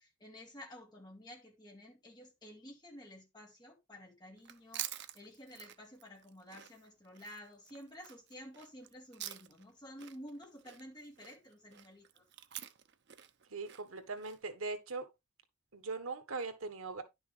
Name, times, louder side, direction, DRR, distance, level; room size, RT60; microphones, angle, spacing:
voice 1, 0.0-12.2, equal, 20° left, 2.8 m, -52 dB
Chewing mastication, 4.4-9.7 10.0-14.4, right 12 dB, 55° right, 0.8 m, -48 dB
voice 2, 13.5-15.1 15.7-17.0, right 3 dB, 80° right, 1.5 m, -40 dB
11.0 x 6.3 x 3.4 m
head